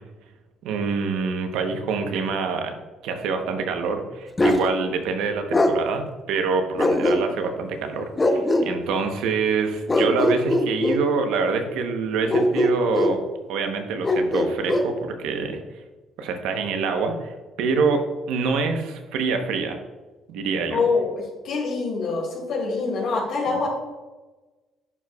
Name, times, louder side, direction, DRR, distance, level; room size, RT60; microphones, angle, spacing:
voice 1, 0.6-2.8 3.0-13.2 13.5-15.6 16.2-19.8 20.3-20.8 23.5-23.6, right 4 dB, 85° right, 6 dB, 0.9 m, -26 dB
Bark, 4.4-4.6 5.5-5.7 6.8-7.5 8.2-8.7 9.9-11.0 12.3-13.2 14.0-14.9, left 1 dB, 20° left, 0.7 m, -21 dB
voice 2, 20.7-23.7, left 4 dB, 70° left, -2 dB, 2.1 m, -25 dB
11.0 x 4.8 x 2.3 m, 1.2 s
cardioid pair, 105°, 0 cm